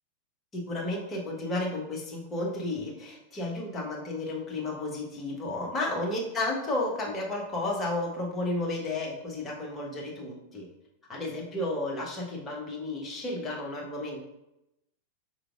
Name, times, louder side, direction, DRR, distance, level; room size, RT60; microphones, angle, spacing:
voice 1, 0.5-10.7 11.1-14.2, left 2 dB, 20° left, -3 dB, 1.1 m, -32 dB
4.9 x 3.1 x 2.4 m, 0.86 s
figure-of-eight pair, 90°, 0 cm